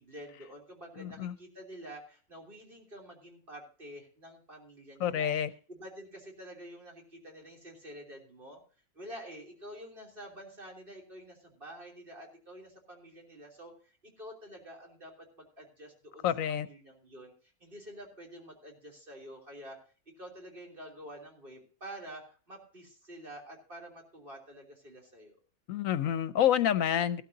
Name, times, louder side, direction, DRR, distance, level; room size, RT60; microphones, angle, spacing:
voice 1, 0.0-5.3 5.7-8.6 9.0-17.3 17.6-19.8 20.2-25.4, equal, 40° right, -1 dB, 3.5 m, -48 dB
voice 2, 1.0-1.3 5.0-5.5 16.2-16.7 25.7-27.2, left 10 dB, 75° left, 13 dB, 1.1 m, -28 dB
16.0 x 12.5 x 2.7 m, 0.38 s
omnidirectional pair, 1.5 m